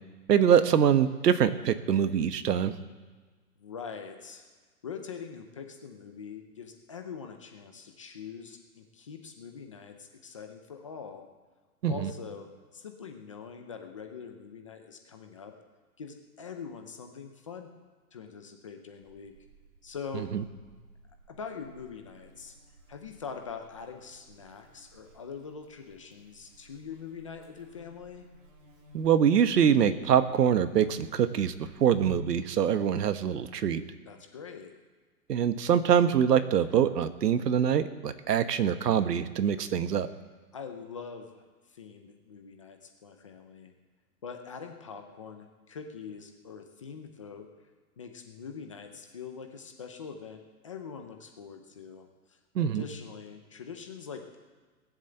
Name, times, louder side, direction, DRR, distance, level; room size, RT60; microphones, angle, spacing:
voice 1, 0.3-2.7 11.8-11.9 28.9-31.5 31.8-33.8 35.3-40.1 52.5-52.8, right 8 dB, 80° right, 11 dB, 1.2 m, -24 dB
voice 2, 3.6-4.5 4.8-11.3 11.9-12.5 12.7-15.5 16.0-17.7 18.1-19.3 19.8-20.3 21.3-22.5 22.9-28.3 34.1-34.7 40.5-43.7 44.2-47.5 48.0-54.4, left 6 dB, 20° left, 5 dB, 0.6 m, -43 dB
Buzz, 19.0-32.2, right 3 dB, 30° right, 2.3 m, -52 dB
19.5 x 7.5 x 7.8 m, 1.4 s
hypercardioid pair, 170°, 47 cm